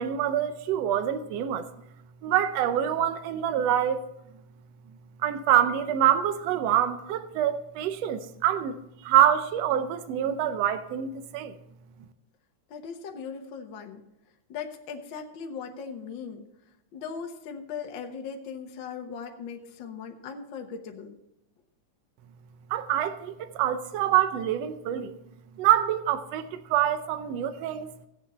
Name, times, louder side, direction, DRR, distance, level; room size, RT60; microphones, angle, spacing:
voice 1, 0.0-1.7 2.2-4.1 5.2-11.5 22.7-25.1 25.6-27.9, right 10 dB, 70° right, 1.8 m, -25 dB
voice 2, 12.7-14.0 14.5-16.4 16.9-21.1, left 6 dB, 55° left, 1.4 m, -38 dB
15.5 x 8.4 x 4.2 m
omnidirectional pair, 3.3 m